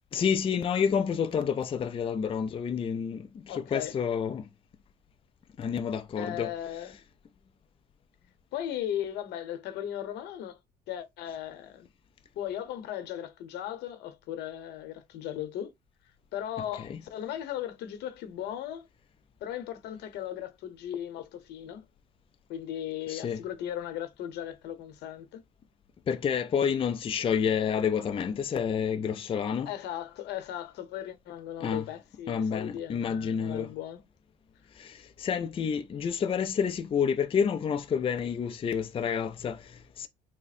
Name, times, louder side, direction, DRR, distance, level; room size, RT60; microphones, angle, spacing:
voice 1, 0.1-4.5 5.6-6.5 16.9-17.0 23.1-23.4 26.1-29.7 31.6-31.8 32.3-33.7 34.8-40.1, left 7 dB, 30° left, 0.5 m, -29 dB
voice 2, 3.5-3.9 6.2-7.0 8.5-10.6 10.9-11.9 12.4-15.7 16.3-18.9 19.4-21.9 22.5-25.4 29.7-34.0, left 11 dB, 80° left, 1.0 m, -37 dB
3.6 x 2.1 x 4.1 m
cardioid pair, 110°, 17 cm